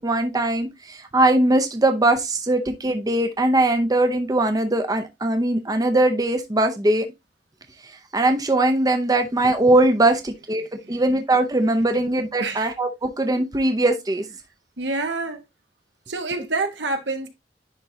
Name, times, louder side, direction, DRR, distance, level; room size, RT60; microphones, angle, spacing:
voice 1, 0.0-7.1 8.1-10.6 10.9-14.2, right 2 dB, 20° right, 0.6 m, -20 dB
voice 2, 12.4-12.7 14.8-15.4 16.1-17.3, right 3 dB, 75° right, 1.4 m, -27 dB
10.5 x 3.7 x 2.7 m
head